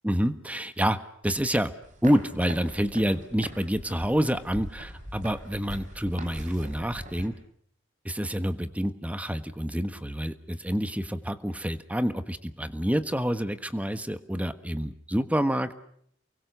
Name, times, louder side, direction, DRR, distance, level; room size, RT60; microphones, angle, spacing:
voice 1, 0.0-1.0 1.2-1.7 2.0-7.3 8.0-15.7, equal, 10° right, 11 dB, 1.4 m, -28 dB
sound 1, 1.8-7.3, right 1 dB, 40° right, 4.5 m, -42 dB
29.0 x 23.5 x 6.9 m, 0.66 s
head